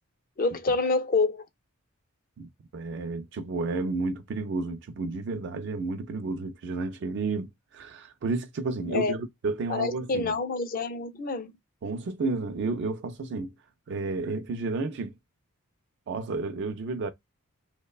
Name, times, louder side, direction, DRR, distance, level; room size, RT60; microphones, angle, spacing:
voice 1, 0.4-1.5 8.9-9.1 9.7-11.5, left 3 dB, 40° left, 0.4 m, -27 dB
voice 2, 2.4-10.3 11.8-13.5 13.9-15.1 16.1-17.1, right 3 dB, 50° right, 0.3 m, -31 dB
3.1 x 2.1 x 2.2 m
head